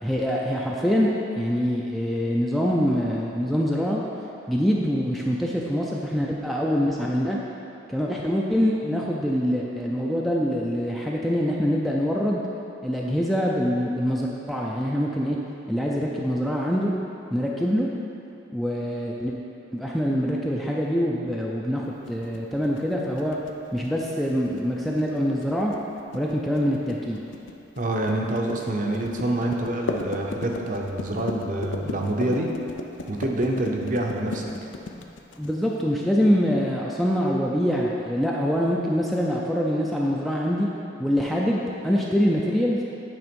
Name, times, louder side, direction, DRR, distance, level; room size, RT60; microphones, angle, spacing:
voice 1, 0.0-4.0 4.5-7.4 7.9-12.4 12.8-15.4 15.7-16.9 17.3-17.9 18.5-19.3 19.7-23.4 23.7-25.7 26.1-27.2 35.4-40.7 41.0-42.8, equal, ahead, -3 dB, 0.4 m, -24 dB
sound 1, 22.1-35.8, left 3 dB, 80° left, 0.5 m, -36 dB
voice 2, 27.8-32.5 33.1-34.5, right 1 dB, 45° right, 1 dB, 0.6 m, -26 dB
8.7 x 3.5 x 5.2 m, 2.8 s
head